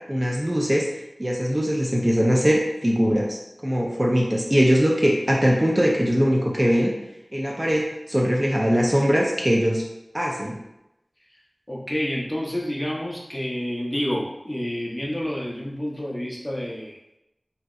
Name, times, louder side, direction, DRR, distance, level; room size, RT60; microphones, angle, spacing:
voice 1, 0.1-0.9 1.2-6.9 7.3-9.8 10.1-10.6, equal, 25° right, -2 dB, 0.4 m, -21 dB
voice 2, 11.7-17.0, equal, 20° left, -3 dB, 0.6 m, -29 dB
2.7 x 2.0 x 2.3 m, 0.89 s
wide cardioid pair, 40°, 0 cm